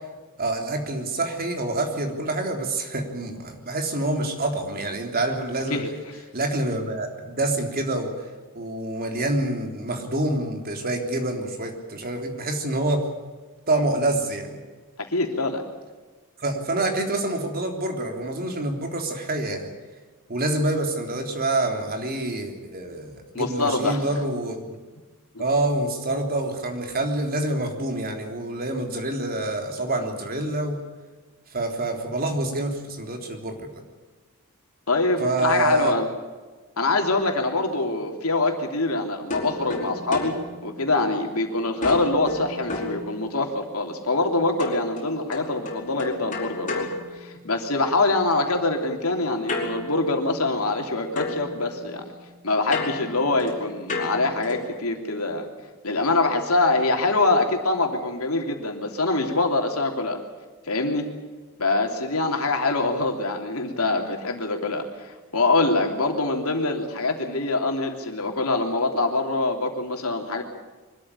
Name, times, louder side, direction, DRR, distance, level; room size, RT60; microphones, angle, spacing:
voice 1, 0.4-5.8 6.3-8.1 8.5-13.0 13.7-14.6 16.4-19.7 20.3-24.8 25.4-30.8 31.5-33.8 35.2-35.9, right 2 dB, 45° right, 3 dB, 3.6 m, -27 dB
voice 2, 15.0-15.6 23.3-24.0 25.3-25.4 34.9-36.1 36.8-46.9 47.1-52.0 52.4-55.5 55.8-60.2 60.7-61.1 61.6-70.4, left 2 dB, 70° left, 3 dB, 3.3 m, -24 dB
sound 1, 39.3-41.4 41.8-43.7 44.6-47.8 49.5-50.9 51.2-54.8, left 2 dB, 35° left, 5.0 m, -34 dB
24.0 x 13.5 x 10.0 m, 1.3 s
head